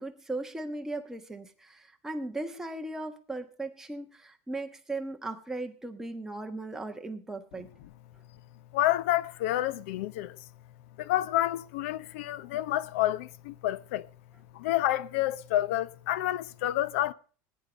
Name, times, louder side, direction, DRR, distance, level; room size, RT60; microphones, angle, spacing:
voice 1, 0.0-7.7, right 2 dB, 5° right, 1.4 m, -37 dB
voice 2, 8.7-10.4 11.0-14.1 14.5-17.1, left 14 dB, 85° left, 0.8 m, -29 dB
19.5 x 10.0 x 5.2 m
cardioid pair, 150°, 7 cm